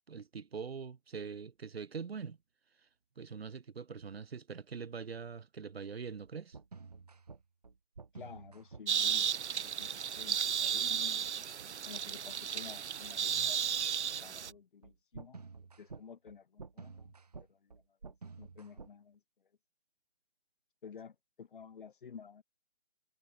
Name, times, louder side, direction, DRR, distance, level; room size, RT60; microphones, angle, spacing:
voice 1, 0.1-2.4 3.2-6.6, right 6 dB, 60° right, 1.9 m, -43 dB
sound 1, 6.2-19.0, right 4 dB, 40° right, 0.4 m, -52 dB
voice 2, 8.1-9.3 9.5-11.3 11.9-13.7 14.2-15.4 15.8-17.1 17.5-17.7 18.0-19.2 20.8-22.4, left 6 dB, 50° left, 1.5 m, -52 dB
sound 2, 8.9-14.5, right 8 dB, 90° right, 0.6 m, -34 dB
hypercardioid pair, 160°, 33 cm